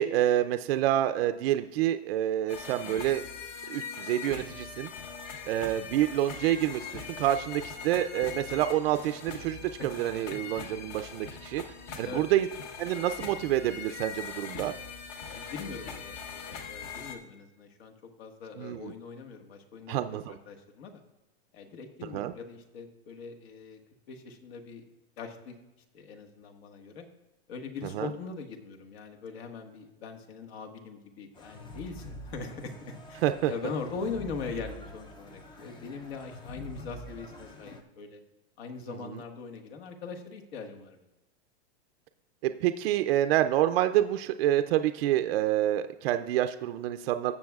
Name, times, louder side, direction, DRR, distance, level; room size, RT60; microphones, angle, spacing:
voice 1, 0.0-3.2 3.7-4.9 5.5-11.6 12.0-12.5 12.8-14.7 18.6-18.9 19.9-20.4 22.1-22.3 27.9-28.1 33.2-33.5 39.0-39.2 42.4-47.3, right 12 dB, 65° right, 9 dB, 0.6 m, -27 dB
sound 1, 2.5-17.2, left 6 dB, 45° left, 1.1 m, -41 dB
voice 2, 15.3-21.0 21.5-23.8 24.1-24.9 25.2-25.6 25.9-27.0 27.5-33.2 33.5-38.2 38.6-41.0, left 5 dB, 65° left, 4 dB, 1.6 m, -41 dB
sound 2, 31.3-37.8, left 1 dB, 15° left, 0.5 m, -46 dB
17.0 x 7.0 x 2.4 m, 1.0 s
supercardioid pair, 150°, 32 cm